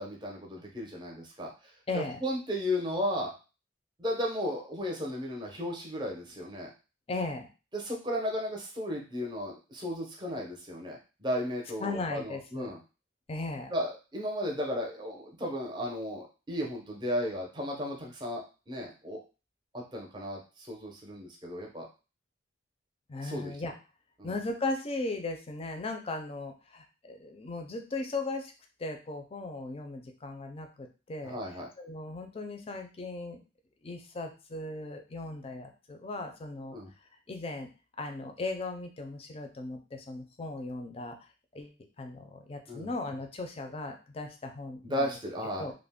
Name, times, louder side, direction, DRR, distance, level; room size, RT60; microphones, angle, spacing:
voice 1, 0.0-1.5 1.9-3.3 4.0-6.7 7.7-12.8 13.7-19.2 19.7-21.9 23.2-23.5 24.2-24.3 31.2-31.7 36.7-36.9 42.7-42.9 44.8-45.6, equal, 25° right, -1 dB, 0.6 m, -34 dB
voice 2, 1.9-2.2 7.1-7.5 11.8-12.7 13.3-13.7 23.1-23.7 24.2-28.5 28.8-31.4 31.8-33.4 33.8-36.8 37.3-37.7 38.0-41.1 41.5-45.1 45.6-45.7, left 2 dB, 30° left, 4 dB, 0.4 m, -37 dB
2.4 x 2.1 x 3.5 m, 0.32 s
head